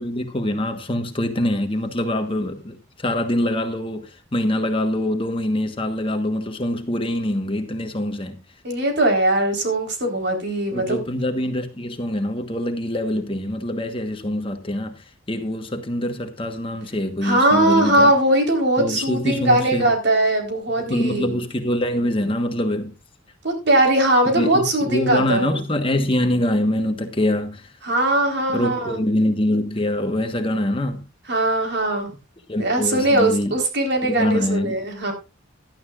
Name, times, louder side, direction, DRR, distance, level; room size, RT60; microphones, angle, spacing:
voice 1, 0.0-8.4 10.7-18.1 18.8-19.9 20.8-22.9 24.3-27.7 28.5-31.0 32.5-33.5 34.0-34.8, left 1 dB, 25° left, 1.3 m, -24 dB
voice 2, 8.6-11.0 17.2-21.4 23.4-25.6 27.8-29.0 31.3-32.1 32.6-35.1, right 1 dB, 55° right, 4.0 m, -20 dB
16.5 x 12.0 x 2.5 m
head